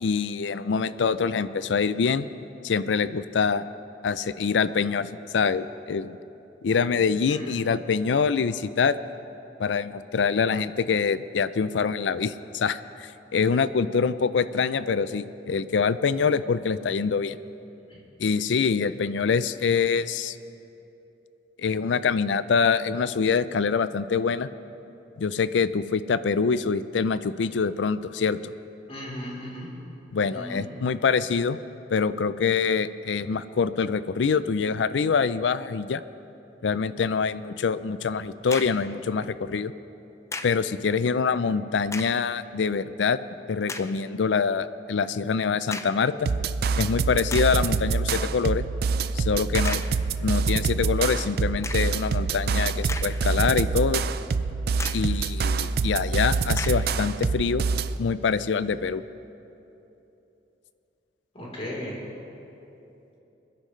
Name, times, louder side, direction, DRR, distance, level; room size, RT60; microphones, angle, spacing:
voice 1, 0.0-2.3 2.6-3.6 4.0-6.2 6.6-9.0 9.6-17.4 18.2-20.4 21.6-24.5 25.2-28.5 30.1-31.6 31.9-36.0 36.6-39.7 40.4-43.2 43.5-46.3 46.8-48.6 49.1-49.8 50.2-54.0 54.9-57.7 58.0-59.0, left 5 dB, 90° left, 14 dB, 0.4 m, -25 dB
voice 2, 28.9-29.7 30.3-30.6 61.3-62.0, equal, 35° left, -5 dB, 3.7 m, -36 dB
sound 1, 38.5-38.9 40.3-40.7 41.8-42.3 42.9-43.0 43.7-44.0 45.7-46.1 46.8-46.9 47.3-47.7 49.6-50.0 51.6-52.0 52.6-53.5 53.8-53.9 54.8-55.2 56.6-57.0, left 3 dB, 15° left, 0.5 m, -36 dB
sound 2, 46.3-58.0, right 4 dB, 60° right, 0.4 m, -26 dB
27.0 x 10.5 x 3.2 m, 2.9 s
head